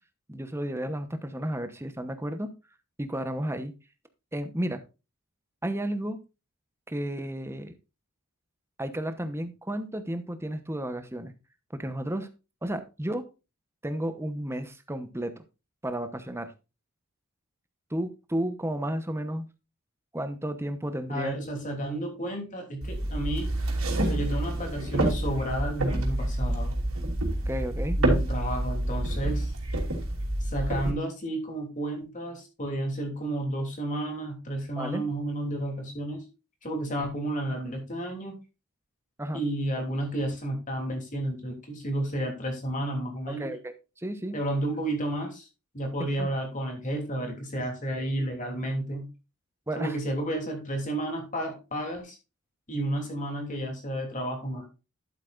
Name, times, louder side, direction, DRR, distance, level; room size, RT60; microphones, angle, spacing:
voice 1, 0.3-2.5 3.0-3.7 4.3-4.8 5.6-6.2 6.9-7.7 8.8-11.3 11.7-12.3 12.6-13.3 13.8-15.3 15.8-16.5 17.9-19.5 20.1-21.4 27.5-28.0 34.8-35.0 39.2-39.4 43.3-44.4 46.2-46.3 49.7-49.9, right 1 dB, 10° right, 9 dB, 0.9 m, -32 dB
voice 2, 21.1-23.5 24.1-26.7 28.0-29.5 30.4-36.2 36.6-38.3 39.3-43.5 44.3-45.5 45.7-49.1 49.7-52.2 52.7-54.7, right 1 dB, 35° left, 2 dB, 3.0 m, -31 dB
sound 1, 22.8-30.9, right 1 dB, 65° right, 3.1 m, -28 dB
11.5 x 8.3 x 2.5 m, 0.28 s
head